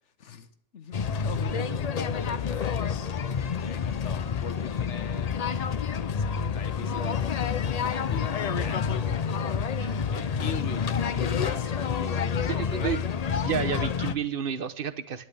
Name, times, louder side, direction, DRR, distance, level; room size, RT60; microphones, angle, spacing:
voice 1, 0.2-2.9 3.6-5.6 6.0-9.3 10.1-13.0, left 6 dB, 80° left, 11 dB, 1.4 m, -41 dB
sound 1, 0.9-14.1, left 6 dB, 45° left, 0.5 m, -28 dB
voice 2, 12.4-13.0 13.4-15.3, right 8 dB, 55° right, 12 dB, 1.0 m, -31 dB
20.5 x 11.0 x 3.4 m, 0.69 s
omnidirectional pair, 1.2 m